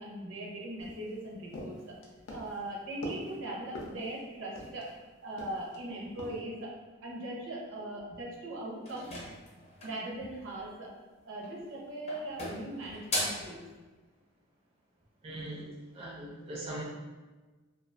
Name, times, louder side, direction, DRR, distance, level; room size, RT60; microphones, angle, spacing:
voice 1, 0.0-1.9 2.3-4.9 5.2-9.1 9.8-10.9 11.3-13.6, right 1 dB, 70° right, -3 dB, 0.6 m, -40 dB
sound 1, 0.8-5.0 5.4-5.8 6.2-6.4, left 1 dB, 85° left, 0.5 m, -44 dB
sound 2, 8.8-10.1 11.3-11.7 12.1-13.5, left 1 dB, 35° left, 0.6 m, -37 dB
voice 2, 15.2-16.8, right 1 dB, 30° right, -4 dB, 0.4 m, -41 dB
2.3 x 2.2 x 2.4 m, 1.3 s
head